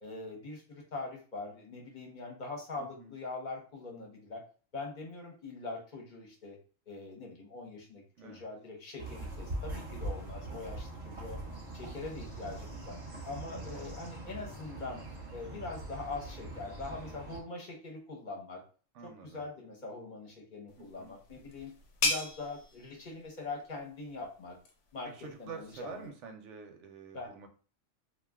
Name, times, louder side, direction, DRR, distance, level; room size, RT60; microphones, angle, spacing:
voice 1, 0.0-4.4 4.7-6.6 6.9-11.4 11.7-13.0 13.2-15.0 15.3-18.6 19.0-21.7 22.0-24.6 24.9-26.1 27.1-27.3, left 3 dB, 40° left, 0 dB, 0.8 m, -43 dB
voice 2, 2.8-3.1 8.2-8.4 18.9-19.5 20.8-21.1 25.0-27.5, right 5 dB, 70° right, 5 dB, 0.9 m, -47 dB
sound 1, 9.0-17.4, right 2 dB, 30° right, 0.9 m, -42 dB
sound 2, 20.7-26.1, left 3 dB, 70° left, 0.9 m, -38 dB
2.4 x 2.3 x 3.4 m, 0.39 s
omnidirectional pair, 1.4 m